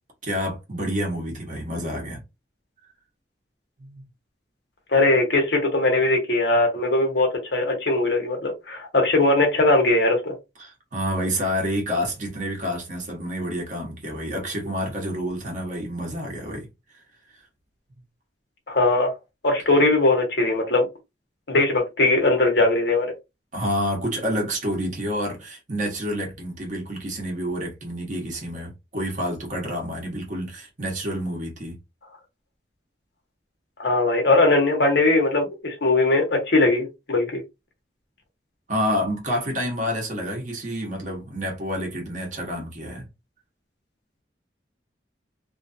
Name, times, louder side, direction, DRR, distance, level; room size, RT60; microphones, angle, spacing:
voice 1, 0.2-2.2 3.8-4.0 10.6-16.7 23.5-31.7 38.7-43.1, equal, 45° right, 1.3 m, -28 dB
voice 2, 4.9-10.3 18.7-19.2 19.4-20.9 21.5-23.1 33.8-37.4, left 2 dB, 70° left, 1.2 m, -20 dB
3.0 x 2.5 x 2.7 m
head